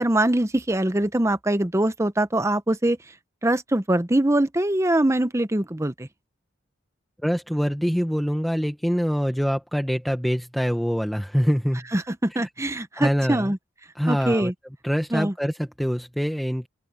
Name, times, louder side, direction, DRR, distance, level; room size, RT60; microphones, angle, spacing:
voice 1, 0.0-3.0 3.4-6.1 11.9-13.6 14.1-14.5 15.1-15.3, right 1 dB, 15° right, 0.8 m, -23 dB
voice 2, 7.2-11.8 12.3-12.5 12.9-13.5 14.0-14.5 14.8-16.7, equal, ahead, 1.2 m, -24 dB
open air
head